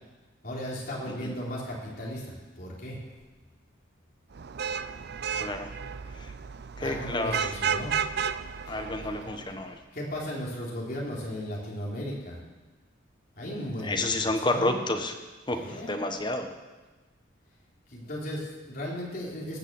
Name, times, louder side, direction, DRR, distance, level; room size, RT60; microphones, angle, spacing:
voice 1, 0.4-3.0 6.8-7.9 8.7-9.1 9.9-12.4 13.4-14.8 15.5-16.1 17.9-19.6, equal, 50° left, -4 dB, 3.8 m, -36 dB
Vehicle horn car horn honking / Traffic noise roadway noise, 4.3-9.6, right 7 dB, 55° right, 0.4 m, -33 dB
voice 2, 5.4-5.7 6.2-6.3 6.8-7.4 8.7-9.8 13.8-15.1 15.5-16.5, left 2 dB, 25° left, 6 dB, 1.1 m, -30 dB
17.5 x 6.5 x 7.7 m, 1.2 s
head